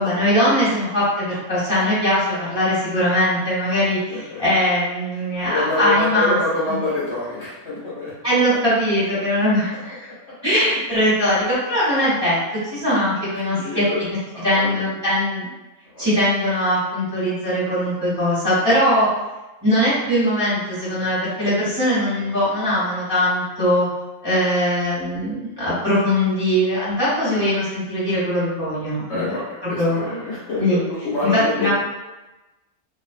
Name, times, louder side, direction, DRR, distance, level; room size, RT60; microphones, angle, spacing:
voice 1, 0.0-6.3 6.7-6.8 8.2-9.9 10.4-12.4 12.6-13.8 14.4-15.5 16.0-19.1 19.6-23.9 24.2-29.3 29.8-30.1 30.6-30.8 31.2-31.7, equal, 20° right, -11 dB, 1.3 m, -21 dB
voice 2, 4.1-4.4 5.4-8.6 9.1-9.2 12.8-12.9 13.5-14.0 14.3-14.8 15.9-16.1 27.2-27.4 29.1-31.7, left 2 dB, 60° left, -9 dB, 1.0 m, -27 dB
2.5 x 2.2 x 2.4 m, 1.0 s
omnidirectional pair, 1.5 m